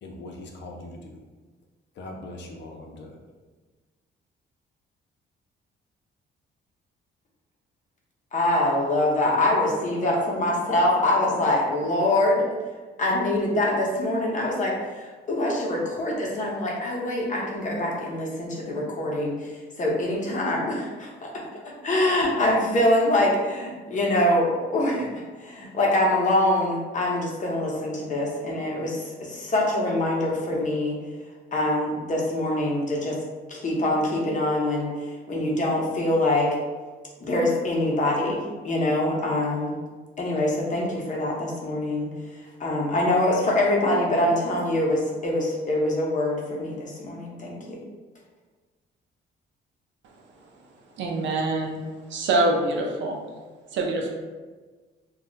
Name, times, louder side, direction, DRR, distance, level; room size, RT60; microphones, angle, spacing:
voice 1, 0.0-1.2 2.0-3.2, left 2 dB, 65° left, 2 dB, 0.5 m, -40 dB
voice 2, 8.3-12.5 13.0-30.9 31.5-33.2 33.5-34.9 35.3-36.6 37.2-39.8 40.2-42.1 42.6-47.8, left 1 dB, 40° left, -2 dB, 0.8 m, -24 dB
voice 3, 51.0-51.8 52.1-53.2 53.7-54.1, right 2 dB, 70° right, 0 dB, 0.6 m, -25 dB
2.4 x 2.1 x 3.8 m, 1.3 s
cardioid pair, 90°, 20 cm